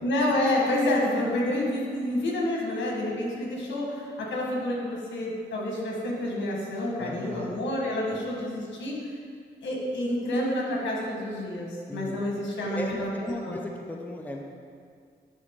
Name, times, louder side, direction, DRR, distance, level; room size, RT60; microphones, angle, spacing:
voice 1, 0.0-9.0 9.6-13.1 13.4-13.6, left 1 dB, 80° left, -2 dB, 1.5 m, -28 dB
voice 2, 7.0-7.6 8.1-8.2 11.9-12.2 12.7-14.4, left 1 dB, 10° left, 1 dB, 0.6 m, -36 dB
10.0 x 3.8 x 3.7 m, 2.2 s
cardioid pair, 100°, 19 cm